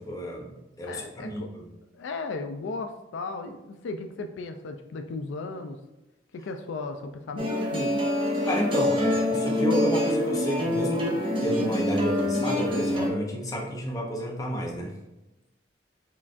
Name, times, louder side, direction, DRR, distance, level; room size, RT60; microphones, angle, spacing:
voice 1, 0.0-1.7 8.4-11.0 11.4-14.9, equal, 20° left, 0 dB, 0.6 m, -30 dB
voice 2, 0.8-1.5 1.9-5.8 6.3-7.9, left 3 dB, 85° left, 6 dB, 0.3 m, -36 dB
sound 1, 7.4-13.1, left 1 dB, 30° right, 0.5 m, -26 dB
5.6 x 2.4 x 2.5 m, 0.98 s
head